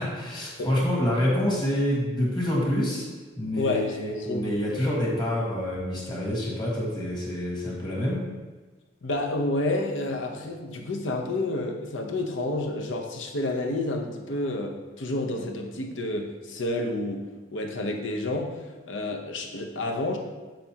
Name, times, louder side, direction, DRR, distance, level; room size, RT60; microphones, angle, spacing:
voice 1, 0.0-3.0 3.4-8.3, left 1 dB, 20° left, -4 dB, 1.6 m, -27 dB
voice 2, 3.6-4.5 9.0-17.2 17.5-18.6 18.9-20.2, left 2 dB, 75° left, 3 dB, 0.8 m, -29 dB
7.6 x 5.1 x 2.9 m, 1.3 s
head